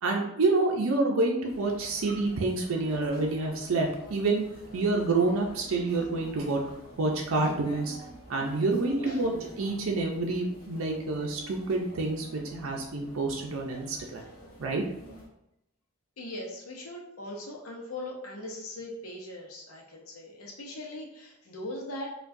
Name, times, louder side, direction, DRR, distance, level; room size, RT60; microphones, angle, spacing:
voice 1, 0.0-4.4 4.7-6.6 7.0-8.0 8.3-14.2 14.6-14.8, right 3 dB, 75° right, 0 dB, 0.5 m, -28 dB
sound 1, 1.5-15.3, equal, 45° left, 1.1 m, -48 dB
voice 2, 16.2-22.1, left 1 dB, 85° left, -2 dB, 0.7 m, -40 dB
4.4 x 2.3 x 2.6 m, 0.83 s
head